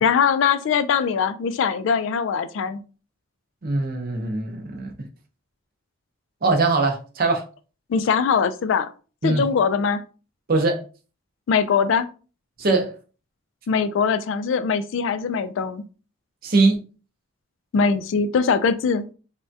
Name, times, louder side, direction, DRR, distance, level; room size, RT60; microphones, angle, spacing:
voice 1, 0.0-2.8 7.9-8.9 9.2-10.0 11.5-12.1 13.7-15.8 17.7-19.0, left 6 dB, 70° left, 0.3 m, -21 dB
voice 2, 3.6-5.1 6.4-7.4 9.2-9.5 10.5-10.8 12.6-13.0 16.4-16.8, right 3 dB, 45° right, 0.6 m, -21 dB
3.4 x 2.2 x 2.6 m
head